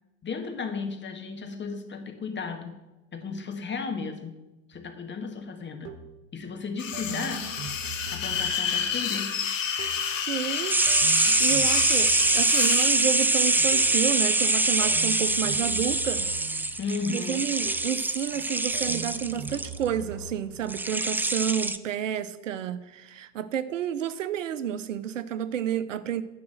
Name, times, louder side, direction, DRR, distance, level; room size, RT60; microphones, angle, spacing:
voice 1, 0.2-2.8 3.1-4.4 4.7-5.9 6.3-7.5 8.1-9.4 16.8-17.5, left 4 dB, 30° left, 5 dB, 1.8 m, -34 dB
sound 1, 4.7-4.9 5.8-6.3 6.9-8.8 9.8-10.2 10.9-12.6 13.7-14.1 14.8-16.7 17.6-18.1 18.7-20.5, right 4 dB, 65° right, 1.2 m, -41 dB
sound 2, 6.8-12.9, left 7 dB, 85° left, 1.3 m, -30 dB
voice 2, 10.3-10.8 11.1-16.3 16.6-16.7 17.1-26.2, right 9 dB, 80° right, 15 dB, 0.7 m, -30 dB
sound 3, 10.7-19.8 20.7-21.8, right 2 dB, 5° right, 0.4 m, -24 dB
10.5 x 5.0 x 7.8 m, 1.0 s
figure-of-eight pair, 65°, 37 cm